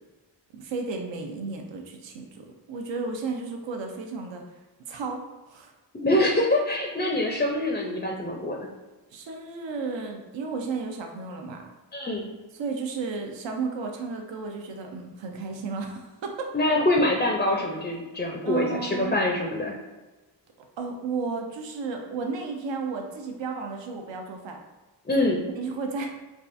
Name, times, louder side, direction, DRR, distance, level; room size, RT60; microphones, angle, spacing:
voice 1, 0.5-4.4 4.9-5.2 5.5-5.7 9.1-11.6 12.5-16.5 18.2-19.2 20.8-24.6 25.5-26.1, right 4 dB, 70° right, 3 dB, 0.6 m, -33 dB
voice 2, 5.9-8.7 11.9-12.3 16.5-19.7 25.1-25.4, left 1 dB, 20° left, 0 dB, 0.5 m, -25 dB
3.6 x 2.4 x 2.5 m, 1.2 s
cardioid pair, 45°, 47 cm